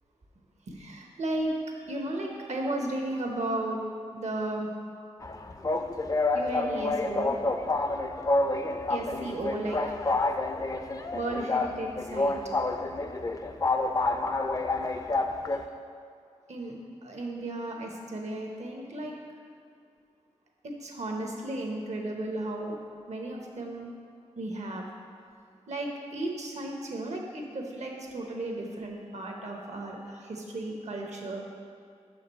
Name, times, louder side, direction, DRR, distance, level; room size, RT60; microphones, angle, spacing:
voice 1, 0.7-1.5 1.9-3.8 4.1-4.7 6.3-7.3 8.9-9.8 11.1-12.4 16.5-16.7 17.0-19.1 20.6-22.7 23.1-23.9 24.4-24.9 25.7-31.4, right 2 dB, 75° right, 1 dB, 0.9 m, -34 dB
sound 1, 5.2-15.6, left 2 dB, 30° left, 0.4 m, -28 dB
6.3 x 5.0 x 4.1 m, 2.3 s
cardioid pair, 50°, 12 cm